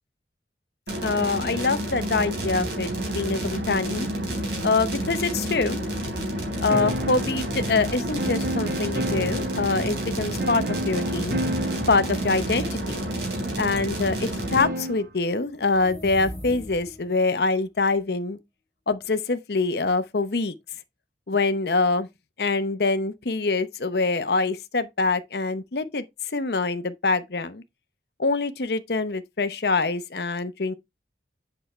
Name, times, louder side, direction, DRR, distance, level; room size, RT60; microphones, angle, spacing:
sound 1, 0.9-14.6, right 1 dB, 75° right, 3.8 m, -30 dB
voice 1, 1.0-4.1 4.6-5.8 6.6-11.4 11.9-13.1 13.6-18.4 18.9-20.5 21.3-22.1 22.4-27.6 28.2-30.7, left 3 dB, 65° left, 0.8 m, -25 dB
sound 2, 6.7-15.1, right 1 dB, 50° right, 1.1 m, -32 dB
sound 3, 15.7-17.2, equal, 5° left, 2.9 m, -39 dB
8.0 x 5.8 x 3.1 m
head